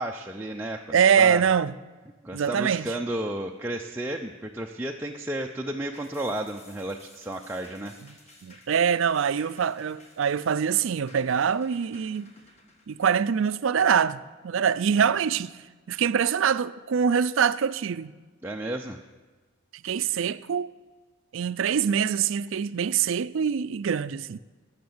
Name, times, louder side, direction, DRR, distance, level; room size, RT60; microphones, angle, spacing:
voice 1, 0.0-1.4 2.2-8.0 18.4-19.0, right 1 dB, 10° right, 0.5 m, -33 dB
voice 2, 0.9-1.7 2.3-2.9 8.4-12.3 12.9-15.5 15.9-18.1 19.8-20.7 21.3-24.4, right 7 dB, 65° right, 0.4 m, -24 dB
sound 1, 5.9-14.6 15.0-15.1, left 2 dB, 30° left, 1.7 m, -55 dB
17.5 x 6.6 x 7.8 m
head